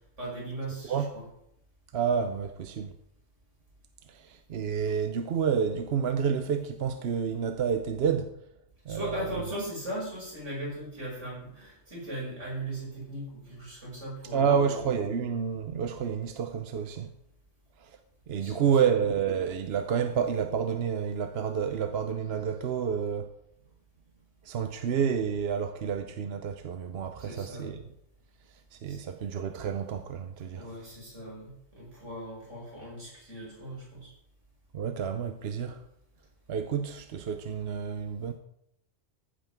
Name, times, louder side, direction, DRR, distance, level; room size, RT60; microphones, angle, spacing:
voice 1, 0.2-1.3 4.9-5.0 8.9-14.8 18.4-19.0 27.2-27.8 28.9-29.0 30.5-34.1, right 1 dB, 80° right, 6.1 m, -39 dB
voice 2, 1.9-3.0 4.1-8.4 8.9-9.5 14.3-17.1 17.8-18.0 18.3-23.3 24.4-27.8 28.7-30.7 34.7-35.8 36.5-38.3, right 7 dB, 65° right, 0.9 m, -29 dB
15.0 x 5.6 x 5.9 m
omnidirectional pair, 1.2 m